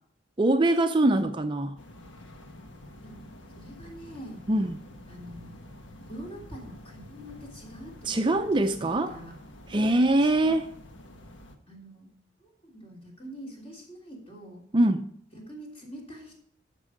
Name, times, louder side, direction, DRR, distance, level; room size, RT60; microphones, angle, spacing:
voice 1, 0.4-1.7 4.5-4.8 8.0-9.1 9.7-10.7 14.7-15.1, right 1 dB, 25° right, 0.5 m, -23 dB
sound 1, 1.8-11.6, left 1 dB, 85° left, 1.4 m, -48 dB
voice 2, 3.5-4.4 5.1-5.7 6.1-8.4 8.8-9.4 10.2-10.5 11.7-12.1 12.4-14.6 15.3-16.4, equal, 30° left, 3.3 m, -45 dB
14.0 x 6.1 x 5.0 m
head